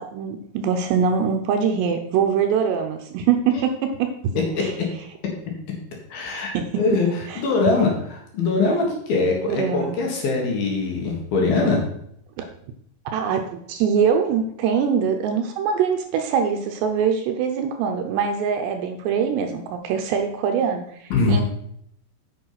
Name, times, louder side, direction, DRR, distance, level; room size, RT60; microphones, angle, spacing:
voice 1, 0.0-4.1 4.6-4.7 6.5-7.4 9.5-10.0 13.1-21.4, right 7 dB, 75° right, 5 dB, 2.7 m, -23 dB
voice 2, 6.1-11.8 21.1-21.4, left 3 dB, 60° left, 0 dB, 3.2 m, -22 dB
8.2 x 7.2 x 5.8 m, 0.70 s
omnidirectional pair, 5.4 m